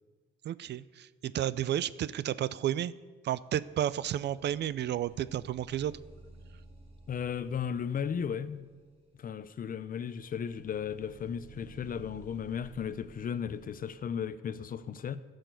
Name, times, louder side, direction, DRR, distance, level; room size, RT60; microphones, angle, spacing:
voice 1, 0.4-2.9 3.2-6.0, right 11 dB, 60° right, 0.4 m, -32 dB
sound 1, 3.9-13.9, right 2 dB, 35° right, 4.0 m, -55 dB
voice 2, 7.1-8.7 9.1-15.2, left 7 dB, 45° left, 0.6 m, -35 dB
12.5 x 6.5 x 8.0 m
cardioid pair, 90°, 20 cm